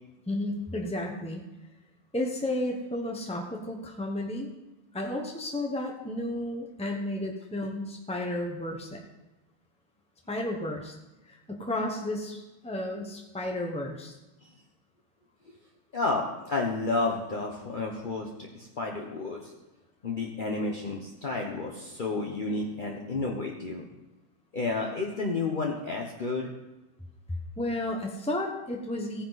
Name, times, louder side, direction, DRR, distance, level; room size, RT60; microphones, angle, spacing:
voice 1, 0.3-1.4 2.1-4.5 4.9-9.0 10.3-10.9 11.3-14.1 27.6-29.2, left 1 dB, 10° left, 1 dB, 0.4 m, -32 dB
voice 2, 15.9-18.3 18.5-19.5 20.0-23.9 24.5-26.5, left 3 dB, 40° left, -1 dB, 0.7 m, -31 dB
15.5 x 9.8 x 4.1 m, 1.0 s
omnidirectional pair, 2.3 m